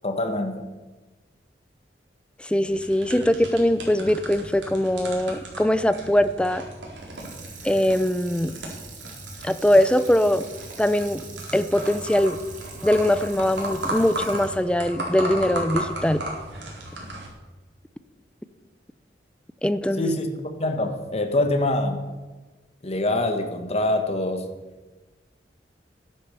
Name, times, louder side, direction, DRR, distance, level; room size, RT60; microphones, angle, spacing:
voice 1, 0.0-0.6 20.0-20.3 20.6-22.0 22.8-24.5, left 1 dB, 35° left, 5 dB, 1.6 m, -24 dB
voice 2, 2.4-6.6 7.6-8.6 9.4-10.5 10.8-11.2 11.5-12.4 12.8-16.2 19.6-20.1, left 1 dB, 5° left, 12 dB, 0.5 m, -21 dB
sound 1, 2.7-17.3, right 1 dB, 75° right, 4.1 m, -35 dB
Water tap faucet / Sink (filling or washing), 6.9-16.2 16.6-16.7, right 5 dB, 45° right, 2.7 m, -45 dB
13.0 x 10.5 x 6.9 m, 1.2 s
head